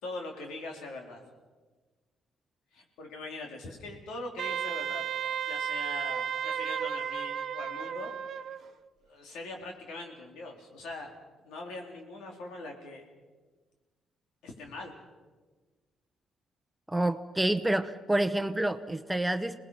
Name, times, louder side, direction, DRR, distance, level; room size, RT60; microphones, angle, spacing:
voice 1, 0.0-1.2 2.7-5.1 5.5-8.1 9.1-11.1 11.4-13.0 14.4-14.9, left 2 dB, 90° left, 1 dB, 3.9 m, -42 dB
Wind instrument woodwind instrument, 4.4-8.6, right 8 dB, 60° right, 0.9 m, -33 dB
voice 2, 16.9-19.6, right 1 dB, 10° right, 10 dB, 1.0 m, -28 dB
27.0 x 20.0 x 5.7 m, 1.3 s
cardioid pair, 90°, 0 cm